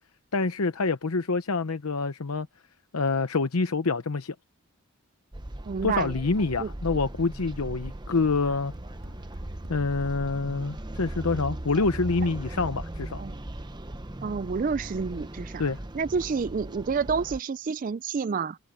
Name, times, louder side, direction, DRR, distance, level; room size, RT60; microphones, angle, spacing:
voice 1, 0.3-2.5 2.9-4.3 5.8-8.7 9.7-13.2 15.6-15.8, left 4 dB, 90° left, 0.9 m, -26 dB
sound 1, 5.3-17.4, right 1 dB, 20° right, 0.8 m, -38 dB
voice 2, 5.6-6.1 6.6-6.7 13.2-13.4 14.2-15.6 15.9-18.6, right 5 dB, 40° right, 0.3 m, -29 dB
sound 2, 8.7-11.0, equal, 70° right, 3.1 m, -51 dB
head